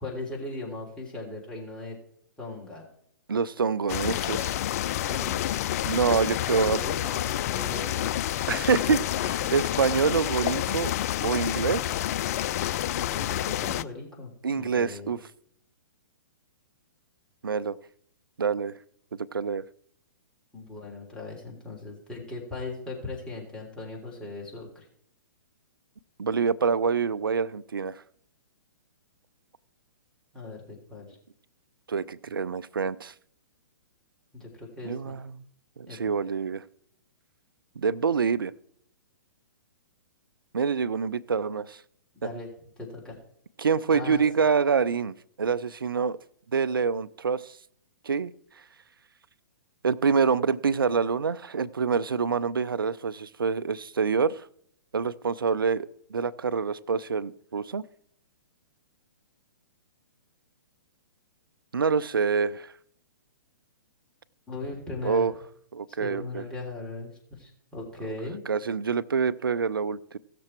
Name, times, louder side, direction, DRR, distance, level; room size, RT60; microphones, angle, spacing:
voice 1, 0.0-2.0 2.4-2.8 5.1-5.5 6.5-8.1 9.2-9.5 12.9-15.2 20.5-24.9 30.3-31.2 34.3-35.1 35.9-36.1 42.2-42.5 42.8-43.2 43.9-44.5 64.5-65.3 65.9-68.4, left 2 dB, 5° left, -4 dB, 3.3 m, -38 dB
voice 2, 3.3-4.5 5.8-6.8 8.5-10.9 11.2-11.9 14.4-15.2 17.4-17.8 18.4-18.7 19.2-19.6 26.2-28.0 31.9-33.1 34.8-35.4 35.8-36.6 37.8-38.5 40.5-41.8 42.2-42.3 43.6-46.2 46.5-47.6 48.0-48.3 49.8-54.4 54.9-57.8 61.7-62.7 65.0-65.3 65.7-66.4 68.5-70.2, right 5 dB, 90° right, 16 dB, 0.5 m, -26 dB
sound 1, 3.9-13.8, left 13 dB, 45° left, 0.4 m, -29 dB
16.5 x 6.9 x 4.4 m, 0.68 s
hypercardioid pair, 130°, 11 cm